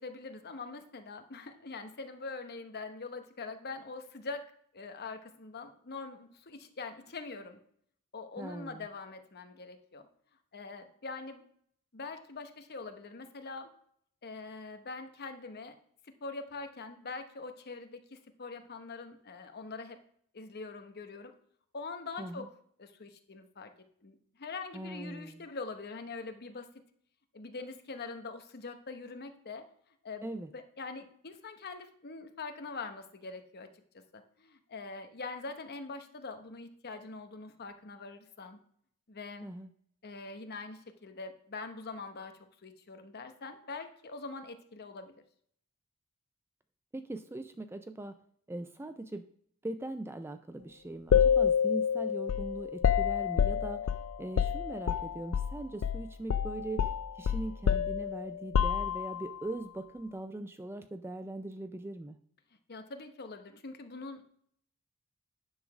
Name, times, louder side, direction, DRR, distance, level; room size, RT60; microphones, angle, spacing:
voice 1, 0.0-4.4 4.7-7.6 8.1-10.0 10.5-11.4 11.9-13.7 14.2-15.7 16.2-20.0 20.3-21.3 21.7-22.5 22.8-23.7 24.0-26.7 27.3-29.6 30.0-30.3 30.5-33.7 34.1-38.6 39.1-39.5 40.0-42.3 42.6-45.2 62.7-64.2, left 3 dB, 45° left, 7 dB, 0.9 m, -43 dB
voice 2, 8.4-8.9 22.2-22.5 24.7-25.5 30.2-30.5 39.4-39.7 46.9-48.2 48.5-49.2 49.6-53.9 54.2-62.2, right 2 dB, 10° right, 10 dB, 0.3 m, -41 dB
sound 1, 51.1-55.5 55.8-56.0 56.3-59.3, left 8 dB, 65° left, 0.4 m, -28 dB
10.0 x 4.0 x 6.0 m, 0.65 s
head